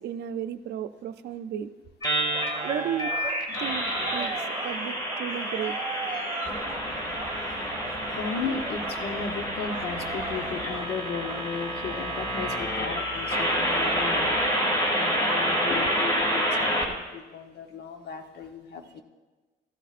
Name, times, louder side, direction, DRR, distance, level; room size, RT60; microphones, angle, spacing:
voice 1, 0.0-1.7 2.6-3.1 3.6-5.7, right 10 dB, 75° right, 10 dB, 0.5 m, -34 dB
sound 1, 2.0-16.8, equal, 25° left, 2.1 m, -28 dB
sound 2, 2.1-14.0, right 4 dB, 15° right, 1.6 m, -39 dB
voice 2, 8.2-14.6 14.9-19.0, left 5 dB, 70° left, 5 dB, 1.0 m, -35 dB
sound 3, 9.1-14.5, equal, 50° left, 2.0 m, -48 dB
14.0 x 12.5 x 2.5 m, 1.3 s
cardioid pair, 95°, 17 cm